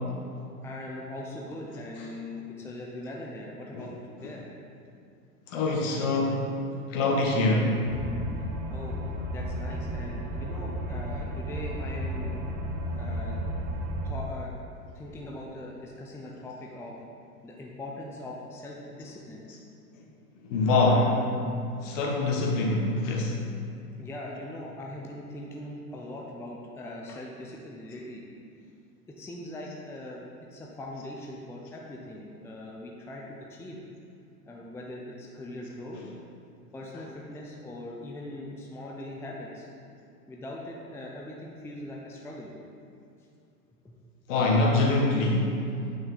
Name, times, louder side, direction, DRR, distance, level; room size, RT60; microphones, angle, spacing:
voice 1, 0.6-4.4 8.7-12.3 12.9-13.5 14.0-14.5 14.9-17.0 17.4-19.4 20.8-21.2 24.0-28.2 29.2-30.2 30.5-33.8 34.5-36.0 36.7-39.7 40.3-42.5 43.8-43.9, left 1 dB, 5° left, -2 dB, 0.6 m, -41 dB
voice 2, 5.5-6.6 6.9-7.8 19.9-20.0 20.4-21.1 21.8-23.4 35.9-36.0 44.3-45.6, left 2 dB, 50° left, -1 dB, 1.8 m, -24 dB
sound 1, 7.8-14.1, equal, 35° right, 1.3 m, -33 dB
9.5 x 6.1 x 4.0 m, 2.5 s
figure-of-eight pair, 100°, 47 cm